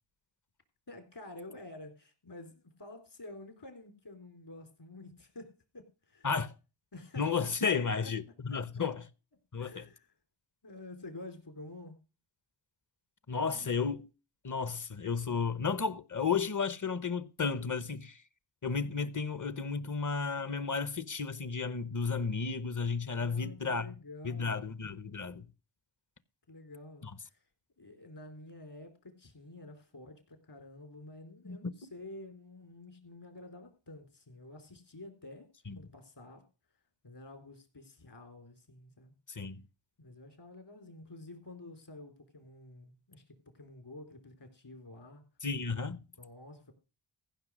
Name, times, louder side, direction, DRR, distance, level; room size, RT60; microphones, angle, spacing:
voice 1, 0.9-6.3 6.9-7.5 8.5-8.6 9.6-10.1 10.6-12.0 23.2-24.7 26.5-27.4 27.8-35.5 35.8-36.4 37.0-39.1 40.0-45.2 46.2-46.7, left 2 dB, 55° left, 3.6 m, -50 dB
voice 2, 7.2-9.0 9.5-9.9 13.3-14.1 14.4-18.2 18.6-23.9 24.2-25.5 27.0-27.1 31.4-31.6 35.7-35.8 39.3-39.6 45.4-46.0, left 5 dB, 40° left, 0.9 m, -33 dB
15.0 x 5.9 x 6.2 m
cardioid pair, 60°, 49 cm